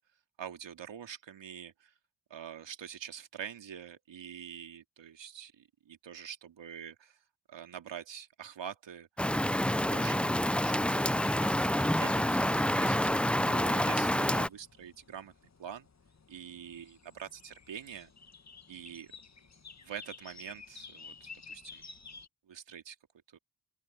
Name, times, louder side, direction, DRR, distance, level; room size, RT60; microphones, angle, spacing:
voice 1, 0.4-1.9 2.3-7.2 7.5-9.1 9.9-15.3 15.6-15.9 16.3-18.1 18.7-19.2 19.8-21.9 22.4-22.9 23.3-23.4, right 8 dB, 70° right, 3.1 m, -45 dB
Rain, 9.2-14.5, left 1 dB, ahead, 0.7 m, -28 dB
sound 1, 11.2-22.3, left 4 dB, 35° left, 1.9 m, -53 dB
open air
supercardioid pair, 40°, 45 cm